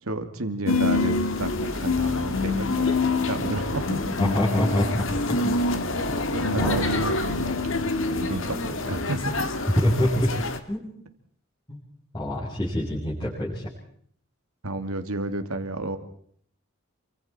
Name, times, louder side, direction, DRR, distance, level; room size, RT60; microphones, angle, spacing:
voice 1, 0.0-3.0 3.3-4.0 6.3-7.5 8.1-9.5 14.6-16.0, right 2 dB, 90° right, 7 dB, 2.4 m, -31 dB
sound 1, 0.7-10.6, left 3 dB, 65° left, 2.0 m, -26 dB
voice 2, 4.2-5.0 5.4-5.6 6.1-6.2 6.6-6.8 9.8-10.3 10.7-10.9 11.7-11.8 12.1-13.6, left 1 dB, 20° left, -8 dB, 6.7 m, -25 dB
28.5 x 24.5 x 4.4 m, 0.62 s
head